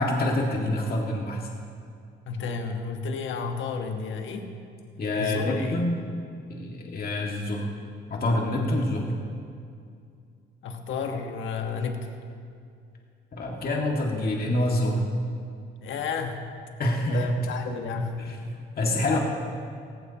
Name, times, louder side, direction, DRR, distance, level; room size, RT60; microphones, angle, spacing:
voice 1, 0.0-1.5 5.0-6.0 6.5-7.7 8.1-9.0 13.3-15.1 16.8-17.3 18.2-19.2, left 1 dB, 50° left, -1 dB, 2.0 m, -26 dB
voice 2, 2.3-4.5 5.2-5.9 10.6-12.1 15.8-16.4 17.1-18.3 18.8-19.2, left 5 dB, 75° left, 4 dB, 1.3 m, -32 dB
17.0 x 15.5 x 2.9 m, 2.3 s
cardioid pair, 90°, 20 cm